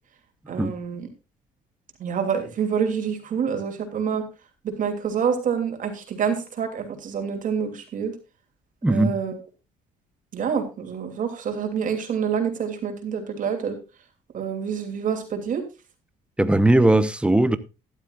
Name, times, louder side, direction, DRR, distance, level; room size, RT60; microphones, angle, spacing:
voice 1, 0.5-1.1 2.0-4.2 4.6-8.2 8.9-9.4 10.3-13.8 14.3-15.6, right 7 dB, 50° right, 2.9 m, -27 dB
voice 2, 8.8-9.1 16.4-17.6, right 1 dB, 5° right, 0.9 m, -18 dB
14.0 x 11.5 x 2.5 m
cardioid pair, 110°, 17 cm